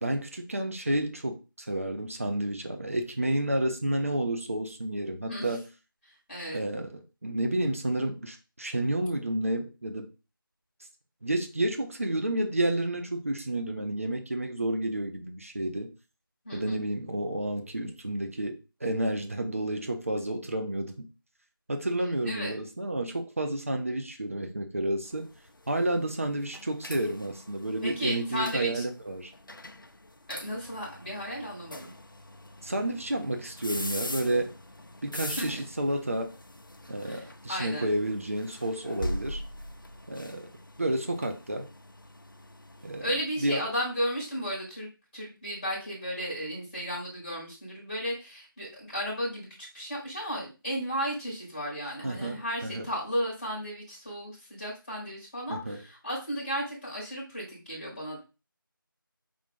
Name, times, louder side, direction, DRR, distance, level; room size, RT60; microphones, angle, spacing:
voice 1, 0.0-5.6 6.5-10.1 11.2-15.9 16.5-21.1 21.7-25.3 25.7-29.3 32.6-34.5 35.0-36.3 36.9-39.4 40.1-40.5 40.8-41.7 42.8-43.1 43.4-43.7 52.0-52.9 55.5-55.8, right 1 dB, 40° right, 0.7 m, -30 dB
voice 2, 6.3-6.6 16.4-16.8 22.2-22.6 27.8-28.8 30.3-31.9 35.2-35.6 37.0-37.9 43.0-44.9 45.1-58.2, equal, 15° left, 1.4 m, -34 dB
sound 1, 25.1-43.2, left 1 dB, 65° left, 0.6 m, -42 dB
5.2 x 2.5 x 3.5 m
figure-of-eight pair, 165°, 12 cm